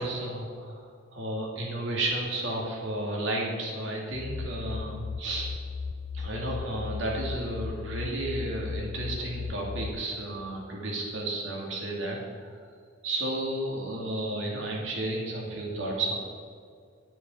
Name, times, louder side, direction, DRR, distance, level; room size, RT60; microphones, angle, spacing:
voice 1, 0.0-5.5 6.1-12.5 13.0-16.2, right 1 dB, 70° right, -2 dB, 2.7 m, -32 dB
sound 1, 4.1-9.9, left 5 dB, 70° left, 0.6 m, -36 dB
10.5 x 9.1 x 5.7 m, 2.2 s
head